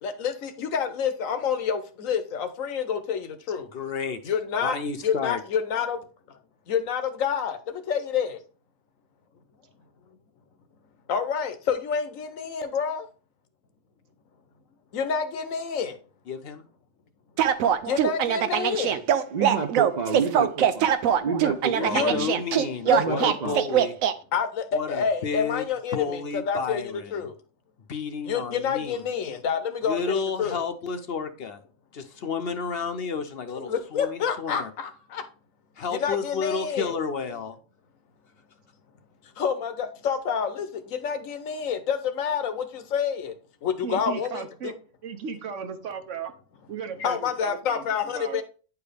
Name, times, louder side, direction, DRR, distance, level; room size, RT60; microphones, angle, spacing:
voice 1, 0.0-3.7 4.2-4.8 5.0-6.0 6.7-8.4 11.1-13.1 14.9-16.0 17.8-19.0 21.9-22.1 22.9-23.3 24.3-27.3 28.2-30.6 33.6-35.2 35.9-37.0 39.4-43.3 43.6-44.7 47.0-48.4, left 7 dB, 80° left, 1.2 m, -28 dB
voice 2, 3.7-4.2 4.6-5.4 16.3-16.6 20.3-20.5 21.7-23.9 24.7-25.6 25.9-27.3 27.9-29.0 29.8-31.6 31.9-34.7 35.8-37.6, left 5 dB, 55° left, 0.8 m, -31 dB
sound 1, 17.4-24.1, right 9 dB, 90° right, 1.0 m, -22 dB
voice 3, 19.3-20.9 21.2-22.3 22.9-23.6, right 5 dB, 50° right, 0.5 m, -29 dB
voice 4, 43.8-44.7 45.0-46.3 46.7-47.9 48.1-48.4, right 7 dB, 70° right, 1.2 m, -35 dB
9.3 x 4.7 x 3.4 m
omnidirectional pair, 1.4 m